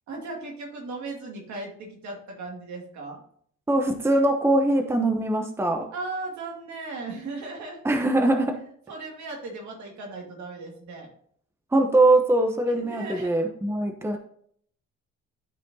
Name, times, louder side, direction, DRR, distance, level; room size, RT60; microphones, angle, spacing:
voice 1, 0.1-3.2 5.9-7.8 8.9-11.1 12.7-13.4, right 3 dB, 70° right, 0 dB, 2.4 m, -37 dB
voice 2, 3.7-5.9 7.8-8.6 11.7-14.2, right 2 dB, 10° right, 5 dB, 0.9 m, -22 dB
12.5 x 4.2 x 2.8 m, 0.62 s
cardioid pair, 90°, 30 cm